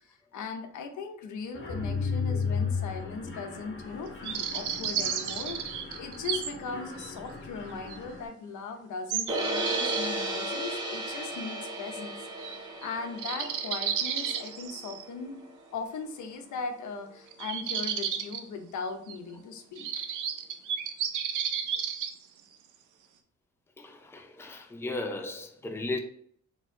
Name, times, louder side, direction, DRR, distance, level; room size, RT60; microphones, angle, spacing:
voice 1, 0.0-15.4 15.7-20.0, left 4 dB, 75° left, 0.8 m, -39 dB
Mechanisms, 1.5-8.3, left 5 dB, 45° left, 1.2 m, -35 dB
sound 1, 4.2-6.5 7.0-7.1 7.9-8.0 9.1-10.1 12.4-12.6 12.8-12.9 13.2-15.0 17.3-18.4 19.1-19.2 19.8-22.1, right 8 dB, 80° right, 0.6 m, -32 dB
sound 2, 9.3-15.4, right 1 dB, 15° right, 1.2 m, -34 dB
voice 2, 23.8-26.0, left 2 dB, 10° left, 0.5 m, -36 dB
4.2 x 3.0 x 3.7 m
cardioid pair, 90°, 30 cm